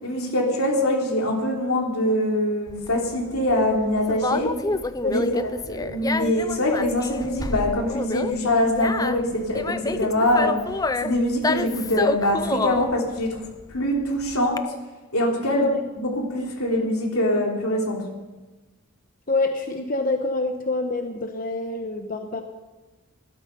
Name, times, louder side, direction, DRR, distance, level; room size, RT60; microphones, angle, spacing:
voice 1, 0.0-4.5 5.0-10.6 11.0-13.4 13.7-14.6 15.1-15.7 16.0-18.0, left 1 dB, 90° left, 0 dB, 3.6 m, -23 dB
Conversation, 2.7-14.6, left 3 dB, 15° left, 0.4 m, -29 dB
voice 2, 5.0-5.5 15.5-15.8 19.3-22.4, left 2 dB, 40° left, 5 dB, 1.0 m, -26 dB
17.5 x 12.5 x 5.4 m, 1.2 s
head